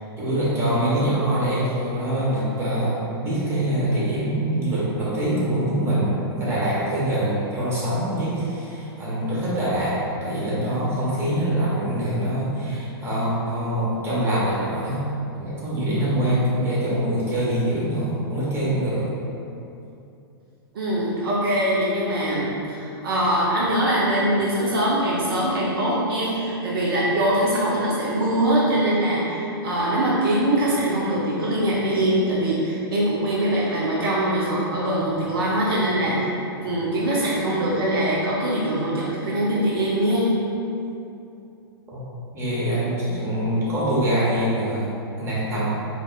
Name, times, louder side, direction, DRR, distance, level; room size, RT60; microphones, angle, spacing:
voice 1, 0.2-15.0 15.4-19.1 41.9-42.0 42.3-45.8, right 1 dB, 20° right, -8 dB, 1.3 m, -24 dB
voice 2, 20.7-36.3 36.6-40.3, right 1 dB, 65° right, -6 dB, 0.7 m, -22 dB
4.2 x 3.3 x 2.4 m, 2.7 s
hypercardioid pair, 110°, 13 cm